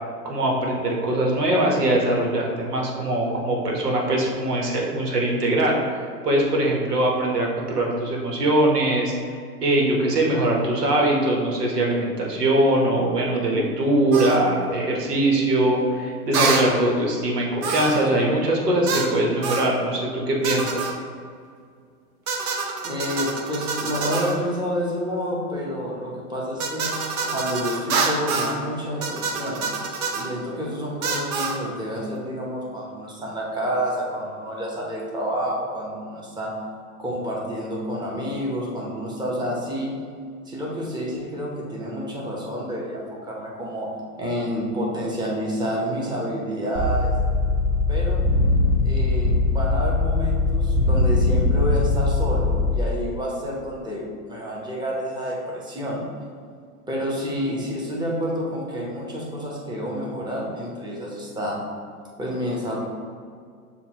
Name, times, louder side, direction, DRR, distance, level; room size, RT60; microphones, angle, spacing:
voice 1, 0.2-5.8 6.2-9.1 9.6-20.9, right 1 dB, 90° right, -1 dB, 1.2 m, -22 dB
sound 1, 14.1-14.4 16.3-16.7 17.6-18.1 18.9-19.1 19.4-19.7 20.4-20.9 22.3-24.4 26.6-28.6 29.0-30.3 31.0-31.6, right 4 dB, 65° right, 0.9 m, -26 dB
voice 2, 22.8-26.9 27.3-29.6 30.1-36.5 37.0-39.9 40.5-43.9 44.2-47.1 47.9-48.3 48.8-56.0 56.9-61.6 62.2-62.8, equal, 10° right, -4 dB, 0.9 m, -29 dB
sound 2, 46.7-52.7, left 2 dB, 35° right, 0.6 m, -21 dB
6.8 x 2.4 x 2.9 m, 2.2 s
hypercardioid pair, 110°, 46 cm